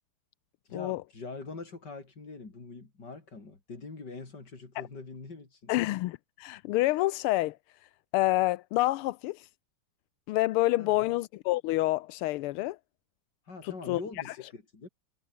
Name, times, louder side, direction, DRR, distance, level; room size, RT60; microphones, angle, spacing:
voice 1, 0.7-5.7 10.8-11.1 13.5-14.9, left 3 dB, 50° left, 4.8 m, -43 dB
voice 2, 5.7-7.6 8.1-9.5 10.3-12.8 13.6-14.0 14.3-14.4, left 17 dB, 85° left, 1.5 m, -28 dB
omnidirectional pair, 2.4 m